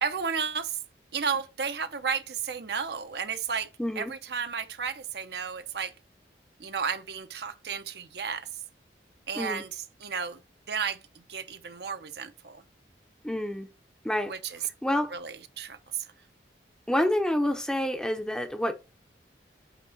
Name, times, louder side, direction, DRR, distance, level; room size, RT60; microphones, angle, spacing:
voice 1, 0.0-0.8 1.1-3.7 4.0-5.9 6.6-8.5 9.3-10.4 10.7-11.0 11.3-12.6 14.3-14.6 15.1-16.1, right 6 dB, 65° right, 0.8 m, -33 dB
voice 2, 3.8-4.1 9.4-9.6 13.2-13.7 14.0-14.3 14.8-15.1 16.9-18.7, left 1 dB, 5° left, 0.7 m, -28 dB
8.3 x 3.6 x 4.0 m
head